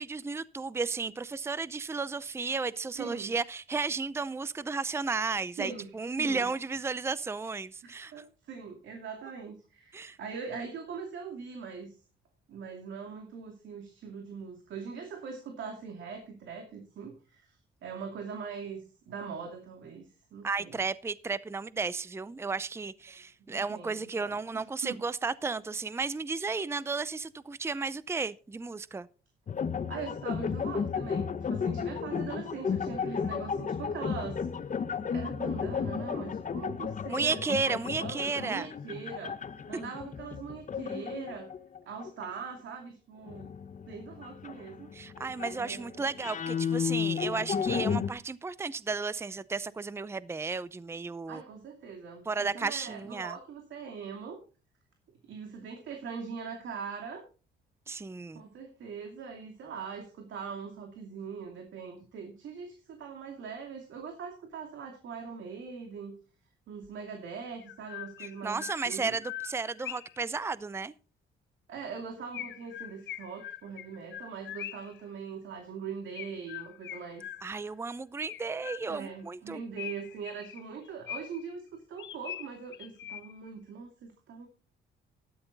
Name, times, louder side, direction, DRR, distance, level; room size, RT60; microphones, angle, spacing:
voice 1, 0.0-8.1 9.9-10.2 20.4-29.1 37.1-38.7 44.9-51.4 52.3-53.3 57.9-58.4 68.2-70.9 77.4-79.6, right 4 dB, 15° right, 0.5 m, -33 dB
voice 2, 3.0-3.3 5.6-6.5 7.8-11.9 12.5-17.6 17.8-20.8 23.5-25.0 29.9-34.5 35.1-39.4 39.7-41.5 41.9-43.5 43.9-44.9 45.6-46.0 46.5-46.7 51.3-54.4 55.3-57.2 58.3-66.1 66.7-69.2 71.7-77.2 78.9-84.5, right 5 dB, 70° right, 2.6 m, -41 dB
sound 1, 29.5-42.3 43.3-48.1, left 6 dB, 40° left, 1.1 m, -33 dB
Chirp tweet, 66.8-66.9 67.6-70.2 72.3-75.0 76.1-77.7 78.3-79.1 79.8-81.5 82.0-83.5, left 12 dB, 70° left, 0.8 m, -43 dB
13.0 x 10.5 x 4.0 m
cardioid pair, 90°, 20 cm